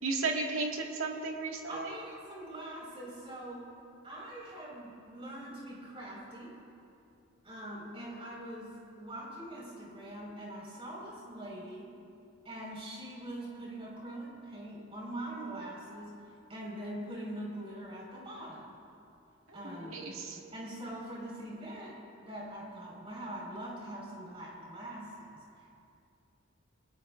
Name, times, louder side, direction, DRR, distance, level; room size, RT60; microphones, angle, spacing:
voice 1, 0.0-2.0 19.5-20.4, right 3 dB, 90° right, 0 dB, 2.1 m, -34 dB
voice 2, 1.7-3.7 4.0-6.6 7.4-12.0 12.4-16.2 16.5-18.8 19.5-20.0 20.5-25.7, right 1 dB, 25° right, -3 dB, 5.1 m, -43 dB
28.0 x 19.0 x 2.6 m, 2.6 s
head